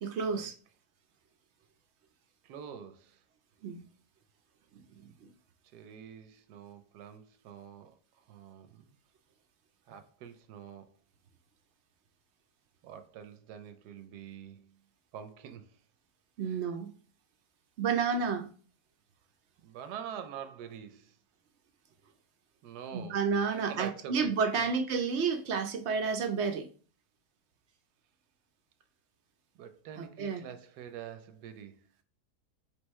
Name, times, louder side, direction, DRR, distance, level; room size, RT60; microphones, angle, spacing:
voice 1, 0.0-0.5 3.6-3.8 16.4-16.9 17.8-18.5 22.9-26.7 30.0-30.4, right 5 dB, 70° right, 0.6 m, -30 dB
voice 2, 2.4-3.2 5.7-8.0 8.3-8.9 9.9-11.0 12.8-14.7 15.1-15.7 16.4-16.6 19.6-21.2 22.6-23.3 23.5-24.7 29.6-31.8, right 8 dB, 85° right, 1.2 m, -46 dB
3.6 x 2.9 x 4.2 m
omnidirectional pair, 1.7 m